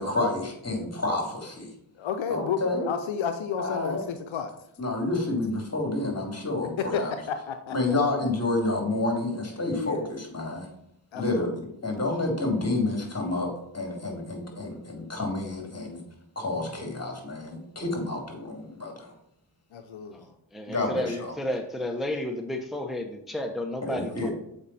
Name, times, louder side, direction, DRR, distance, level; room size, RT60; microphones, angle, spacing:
voice 1, 0.0-1.7 2.3-2.9 3.6-4.0 4.8-7.1 7.7-10.7 11.1-16.0 16.4-19.1 20.7-21.3 23.8-24.3, left 2 dB, 30° left, 1 dB, 2.7 m, -29 dB
voice 2, 2.0-4.5 6.8-7.0 7.5-8.0 9.7-10.1 11.1-11.6 19.7-20.2, left 7 dB, 75° left, 7 dB, 0.7 m, -32 dB
voice 3, 20.5-24.3, left 1 dB, ahead, 4 dB, 0.8 m, -32 dB
7.1 x 5.1 x 4.1 m, 0.75 s
cardioid pair, 50°, 46 cm